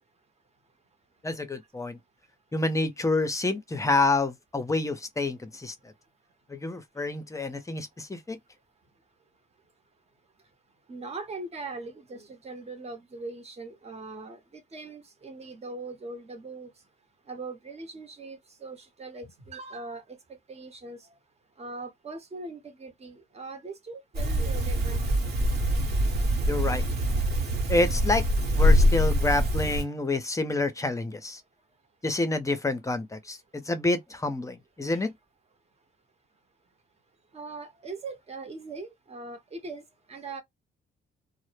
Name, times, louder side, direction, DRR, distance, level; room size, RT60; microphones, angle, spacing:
voice 1, 1.2-2.0 2.5-5.7 6.5-8.4 26.5-26.8 27.7-28.3 28.6-31.4 32.0-35.1, left 2 dB, 15° left, 0.6 m, -28 dB
voice 2, 10.9-16.7 17.3-20.2 20.5-21.1 21.6-25.0 34.9-35.0 37.3-40.4, right 3 dB, 35° right, 0.9 m, -41 dB
sound 1, 24.1-29.8, equal, 55° right, 1.0 m, -24 dB
2.0 x 2.0 x 3.1 m
cardioid pair, 90°, 20 cm